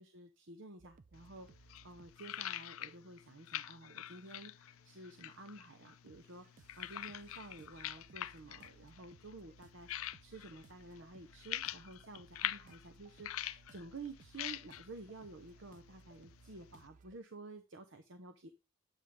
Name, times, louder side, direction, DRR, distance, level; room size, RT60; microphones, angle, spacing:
voice 1, 0.0-18.5, right 2 dB, 60° right, 7 dB, 0.9 m, -52 dB
sound 1, 0.8-2.2 2.9-3.2 3.9-4.9 5.2-17.2, right 4 dB, 40° right, 0.4 m, -63 dB
sound 2, 1.1-16.9, left 12 dB, 85° left, 0.4 m, -46 dB
10.0 x 8.2 x 3.4 m, 0.26 s
head